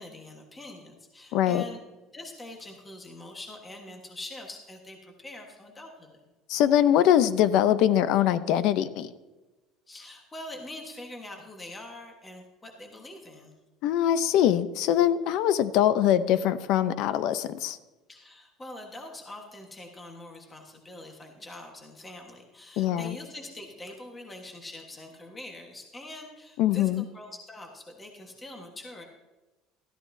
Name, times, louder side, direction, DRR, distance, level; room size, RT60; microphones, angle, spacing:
voice 1, 0.0-1.8 2.1-6.2 9.9-13.5 18.1-29.1, left 2 dB, 10° left, 2 dB, 1.3 m, -44 dB
voice 2, 1.3-1.6 6.5-9.1 13.8-17.8 22.8-23.2 26.6-27.0, left 11 dB, 55° left, 14 dB, 0.6 m, -23 dB
13.5 x 13.0 x 2.7 m, 1.1 s
cardioid pair, 170°, 0 cm